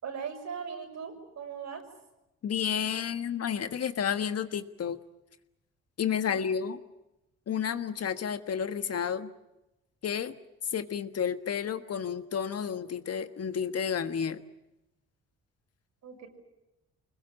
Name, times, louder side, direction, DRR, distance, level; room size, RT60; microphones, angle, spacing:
voice 1, 0.0-1.8 6.2-6.4 16.0-16.3, right 6 dB, 70° right, 3 dB, 6.3 m, -39 dB
voice 2, 2.4-5.0 6.0-6.8 7.5-9.3 10.0-10.3 10.7-14.4, left 7 dB, 55° left, 10 dB, 1.5 m, -31 dB
25.0 x 21.0 x 8.6 m, 0.93 s
cardioid pair, 80°, 29 cm